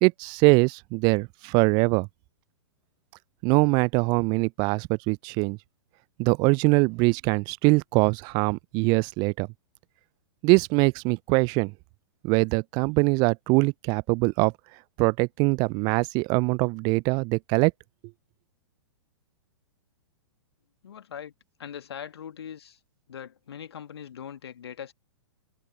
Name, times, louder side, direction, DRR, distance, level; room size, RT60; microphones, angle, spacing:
voice 1, 0.0-2.1 3.4-5.6 6.2-9.5 10.4-11.7 12.2-14.5 15.0-17.7, right 30 dB, 30° right, 0.5 m, -23 dB
voice 2, 20.8-21.3 21.6-22.8 23.1-24.9, left 8 dB, 60° left, 2.0 m, -41 dB
open air
figure-of-eight pair, 110°, 15 cm